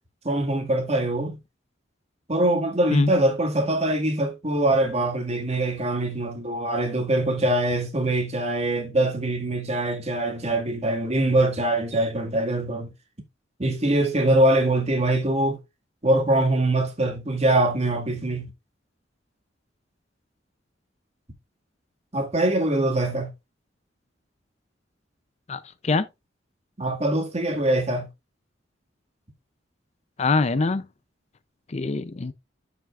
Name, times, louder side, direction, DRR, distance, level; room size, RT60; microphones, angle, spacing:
voice 1, 0.2-1.4 2.3-12.9 13.6-15.6 16.0-18.5 22.1-23.3 26.8-28.1, right 1 dB, 35° right, 2.0 m, -23 dB
voice 2, 25.5-26.1 30.2-30.8 31.7-32.3, left 3 dB, 35° left, 0.5 m, -23 dB
12.0 x 5.8 x 2.4 m
head